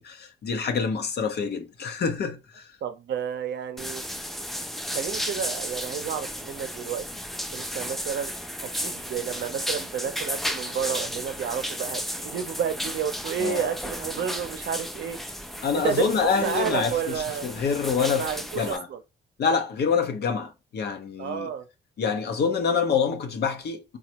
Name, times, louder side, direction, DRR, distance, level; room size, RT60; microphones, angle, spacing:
voice 1, 0.0-2.8 13.4-13.7 15.6-18.9 19.4-21.5 22.0-24.0, left 6 dB, 55° left, 0.7 m, -26 dB
voice 2, 2.8-4.0 4.9-7.0 7.5-8.3 8.8-15.2 15.7-16.1 16.3-17.5 18.2-19.0 21.2-21.6, right 8 dB, 65° right, 0.6 m, -30 dB
sound 1, 3.8-18.8, equal, ahead, 0.3 m, -34 dB
3.3 x 2.3 x 2.9 m
cardioid pair, 90°, 20 cm